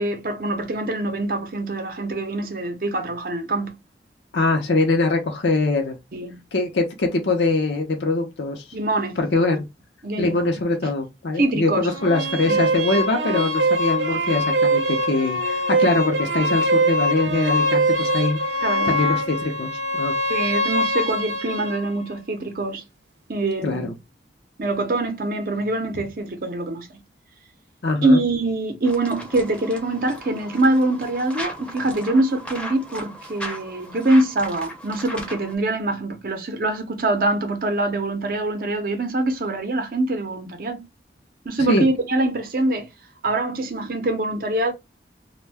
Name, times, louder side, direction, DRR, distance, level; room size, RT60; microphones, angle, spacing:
voice 1, 0.0-3.8 6.1-6.4 8.7-9.4 10.0-10.5 11.4-11.9 12.5-12.6 18.6-19.0 20.3-22.8 23.3-23.9 24.6-27.0 28.0-40.8 41.4-42.9 43.2-44.7, right 2 dB, 50° right, 0.6 m, -24 dB
voice 2, 4.3-6.0 6.5-8.6 9.2-9.7 10.2-18.4 18.8-20.1 23.6-23.9 27.8-28.2 41.7-41.9, left 3 dB, 75° left, 0.6 m, -22 dB
sound 1, 11.9-21.8, right 1 dB, 90° right, 0.7 m, -23 dB
sound 2, 28.8-35.5, equal, 5° left, 0.6 m, -37 dB
2.6 x 2.2 x 3.3 m
head